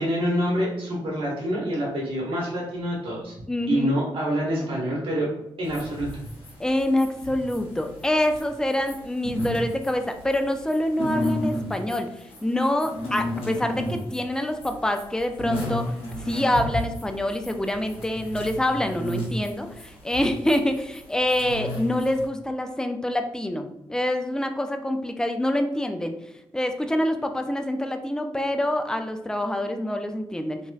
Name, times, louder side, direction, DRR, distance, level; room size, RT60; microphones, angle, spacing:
voice 1, 0.0-3.3 3.7-5.3 5.6-6.1, equal, 65° right, -4 dB, 1.1 m, -26 dB
voice 2, 3.5-4.0 6.6-12.1 12.4-15.9 16.2-26.1 26.5-30.6, left 1 dB, 5° left, 6 dB, 0.4 m, -26 dB
sound 1, 5.6-22.3, equal, 80° left, 1.1 m, -33 dB
3.0 x 2.6 x 2.3 m, 0.84 s
cardioid pair, 55°, 10 cm